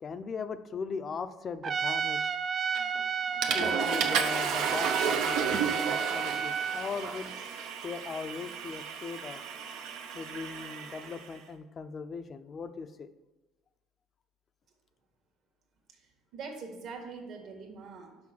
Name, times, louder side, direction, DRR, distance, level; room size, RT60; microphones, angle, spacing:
voice 1, 0.0-2.3 3.5-7.3 7.8-9.4 10.1-13.1, left 5 dB, 35° left, 11 dB, 0.5 m, -39 dB
Trumpet, 1.6-6.9, right 7 dB, 35° right, 0.4 m, -31 dB
Water / Toilet flush, 2.7-3.0 3.4-11.3, right 6 dB, 80° right, 0.9 m, -33 dB
voice 2, 15.9-18.2, right 4 dB, 60° right, 3 dB, 1.7 m, -43 dB
6.1 x 5.4 x 5.9 m, 1.1 s
cardioid pair, 110°, 0 cm